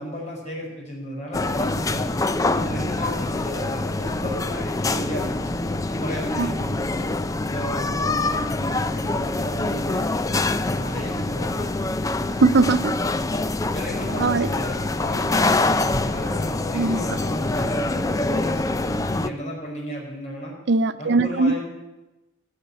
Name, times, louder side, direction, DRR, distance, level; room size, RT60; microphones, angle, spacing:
voice 1, 0.0-2.1 2.5-5.4 5.9-7.1 7.4-10.1 10.6-11.7 13.7-20.6 21.0-21.6, equal, 35° left, -3 dB, 5.5 m, -33 dB
sound 1, 1.3-19.3, left 2 dB, 15° left, 0.4 m, -25 dB
voice 2, 12.4-13.0 14.2-14.5 16.7-17.0 20.7-21.6, right 3 dB, 55° right, 13 dB, 0.4 m, -20 dB
16.5 x 6.9 x 8.7 m, 1.0 s
head